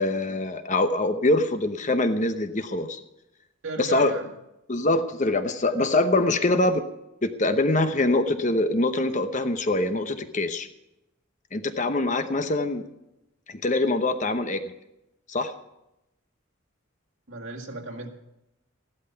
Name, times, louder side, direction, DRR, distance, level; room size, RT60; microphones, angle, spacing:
voice 1, 0.0-3.0 3.8-4.1 4.7-6.8 7.2-10.7 11.5-12.8 13.5-14.6 15.3-15.5, left 2 dB, 35° left, 9 dB, 0.9 m, -24 dB
voice 2, 3.6-4.3 17.3-18.1, right 2 dB, 70° right, 1 dB, 2.0 m, -35 dB
15.5 x 12.0 x 5.8 m, 0.90 s
head